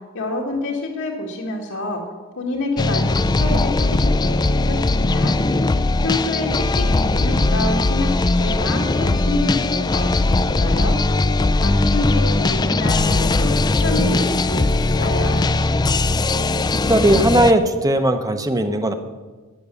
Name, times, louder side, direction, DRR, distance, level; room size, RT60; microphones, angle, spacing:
voice 1, 0.1-2.0 2.4-5.4 6.0-10.9 11.6-15.4, left 2 dB, 80° left, -3 dB, 1.9 m, -27 dB
sound 1, 2.8-17.5, left 2 dB, 20° left, 0.3 m, -19 dB
voice 2, 16.9-18.9, right 1 dB, 15° right, 8 dB, 0.8 m, -17 dB
12.0 x 9.4 x 6.9 m, 1.3 s
head